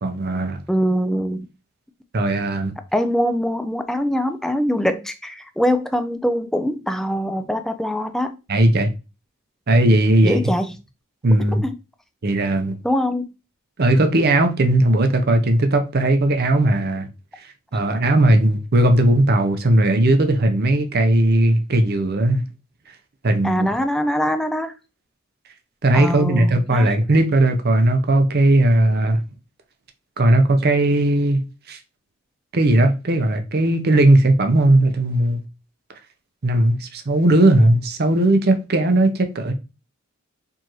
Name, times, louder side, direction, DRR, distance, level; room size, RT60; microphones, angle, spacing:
voice 1, 0.0-0.6 2.1-2.7 8.5-8.9 9.7-10.4 11.2-11.6 12.2-12.8 13.8-17.1 17.7-22.4 23.2-23.7 25.8-29.2 30.2-31.8 32.5-35.4 36.4-39.5, right 1 dB, 45° right, 0.6 m, -17 dB
voice 2, 0.7-1.5 2.9-8.3 10.2-10.7 11.5-11.7 12.8-13.3 23.4-24.7 25.9-26.9, equal, ahead, 0.3 m, -23 dB
4.6 x 2.6 x 3.0 m
head